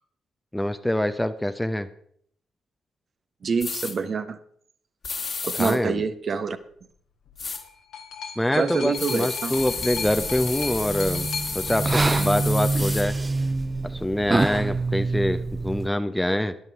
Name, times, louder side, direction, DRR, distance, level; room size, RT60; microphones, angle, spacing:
voice 1, 0.5-1.9 5.6-6.0 8.4-11.3 11.5-13.2 13.8-16.6, left 1 dB, 10° left, 10 dB, 0.8 m, -25 dB
voice 2, 3.4-4.4 5.4-6.6 8.5-9.5, right 5 dB, 45° right, 10 dB, 1.0 m, -26 dB
sound 1, 3.6-3.9 5.0-5.7 7.4-7.6 8.9-13.0, left 4 dB, 45° left, 2.1 m, -32 dB
sound 2, 7.3-13.3 14.2-14.3, left 6 dB, 65° left, 1.7 m, -37 dB
sound 3, 9.6-15.9, right 3 dB, 25° right, 0.5 m, -26 dB
13.0 x 11.0 x 4.7 m, 0.64 s
figure-of-eight pair, 40°, 0 cm